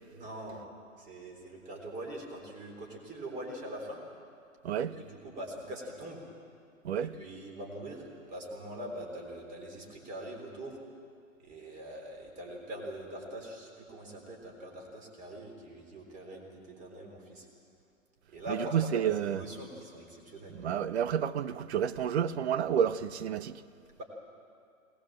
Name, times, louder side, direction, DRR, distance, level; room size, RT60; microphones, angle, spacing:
voice 1, 0.1-0.6 1.0-4.0 4.8-6.2 7.0-10.8 11.4-17.5 18.3-20.5 24.0-24.1, right 1 dB, 20° right, 3.7 m, -43 dB
voice 2, 4.6-5.0 6.8-7.2 18.5-19.4 20.5-23.6, right 8 dB, 50° right, 0.9 m, -30 dB
20.5 x 19.0 x 7.7 m
hypercardioid pair, 130°, 41 cm